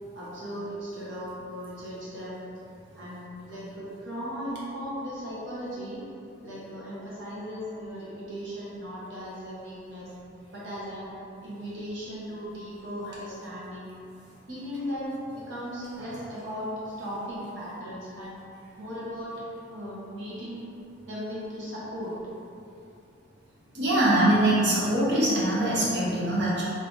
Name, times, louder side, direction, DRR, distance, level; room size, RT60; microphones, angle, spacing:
voice 1, 0.1-2.4 2.9-6.0 6.4-10.1 10.5-11.1 11.4-13.9 14.5-15.1 15.5-18.4 18.8-19.3 19.7-20.7 21.1-22.2, equal, 75° right, -8 dB, 1.1 m, -37 dB
voice 2, 23.7-26.6, right 1 dB, 60° right, -7 dB, 0.8 m, -23 dB
2.8 x 2.7 x 3.6 m, 2.6 s
head